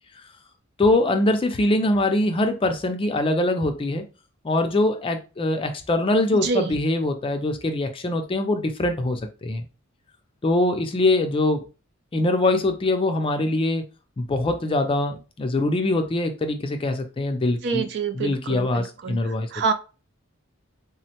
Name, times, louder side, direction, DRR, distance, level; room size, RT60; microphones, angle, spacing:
voice 1, 0.8-4.0 4.4-9.6 10.4-11.6 12.1-13.8 14.2-17.9 18.2-19.5, left 2 dB, 25° left, 0.4 m, -23 dB
voice 2, 6.4-6.8 17.6-19.7, right 5 dB, 50° right, 0.4 m, -27 dB
3.6 x 2.1 x 2.8 m
head